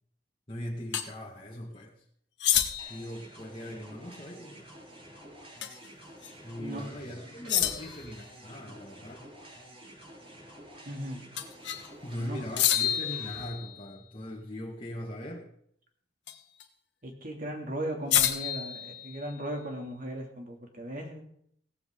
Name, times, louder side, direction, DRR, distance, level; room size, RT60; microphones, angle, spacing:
voice 1, 0.5-2.0 2.9-4.7 6.4-9.2 12.0-15.5, equal, 30° left, -4 dB, 1.8 m, -40 dB
sound 1, 0.9-1.1 2.4-3.1 5.6-5.9 6.2-6.3 7.5-8.1 11.4-11.9 12.6-13.9 16.3-16.6 18.1-19.5, left 11 dB, 70° left, 1.4 m, -29 dB
sound 2, 2.8-13.4, right 1 dB, 30° right, 5.5 m, -50 dB
voice 2, 10.9-11.2 12.2-12.4 17.0-21.2, right 1 dB, 50° right, 2 dB, 2.7 m, -37 dB
17.5 x 14.5 x 3.8 m, 0.67 s
head